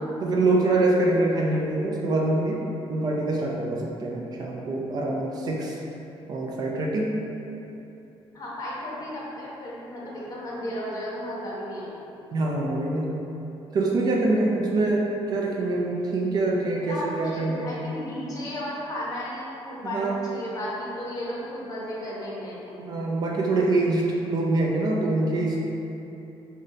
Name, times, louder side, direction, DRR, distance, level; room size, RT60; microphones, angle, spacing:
voice 1, 0.2-2.6 2.9-5.8 6.3-7.1 12.3-13.1 13.7-17.8 19.9-20.2 22.8-25.6, right 2 dB, 40° right, -2 dB, 0.3 m, -25 dB
voice 2, 8.3-12.1 16.8-22.8, left 1 dB, 35° left, -6 dB, 0.7 m, -34 dB
5.0 x 2.1 x 2.6 m, 3.0 s
cardioid pair, 165°, 10 cm